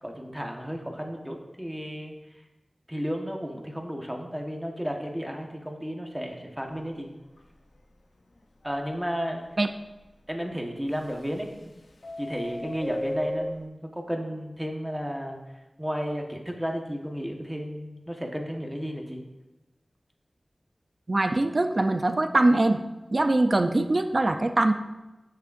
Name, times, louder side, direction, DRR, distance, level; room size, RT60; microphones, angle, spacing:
voice 1, 0.0-2.1 2.9-7.1 8.6-9.4 10.3-11.8 12.2-15.4 15.8-19.2, equal, 5° right, 1 dB, 1.3 m, -33 dB
Subway metro underground, 6.6-6.9 7.4-7.5 7.7-7.8 8.4-8.5 10.9-11.6 11.9-13.6, left 1 dB, 80° left, 0.8 m, -34 dB
voice 2, 21.1-22.8 23.1-24.7, right 2 dB, 45° right, 7 dB, 0.6 m, -22 dB
13.5 x 6.6 x 2.6 m, 1.0 s
wide cardioid pair, 75°, 0 cm